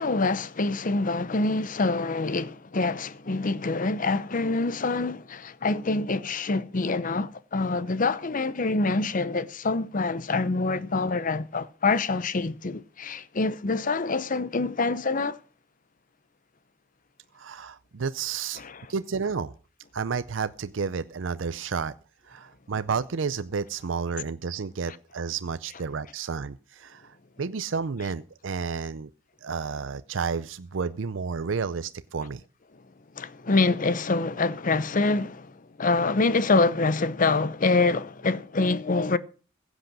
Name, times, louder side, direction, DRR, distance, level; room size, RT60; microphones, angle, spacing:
voice 1, 0.0-15.4 18.6-18.8 33.2-39.2, left 3 dB, 45° left, 0.8 m, -26 dB
voice 2, 17.3-18.6 18.9-19.5 19.9-21.9 22.3-29.1 29.4-32.4, right 5 dB, 80° right, 0.6 m, -31 dB
15.5 x 8.2 x 6.1 m
head